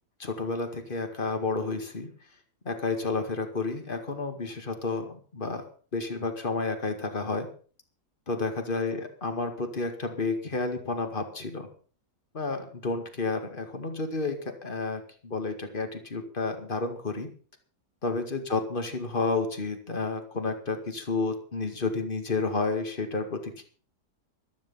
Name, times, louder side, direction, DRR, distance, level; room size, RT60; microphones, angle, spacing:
voice 1, 0.2-2.1 2.6-5.6 5.9-7.5 8.3-11.7 12.3-17.3 18.0-23.6, left 3 dB, 30° left, 7 dB, 2.2 m, -31 dB
14.0 x 13.0 x 5.5 m, 0.43 s
omnidirectional pair, 1.7 m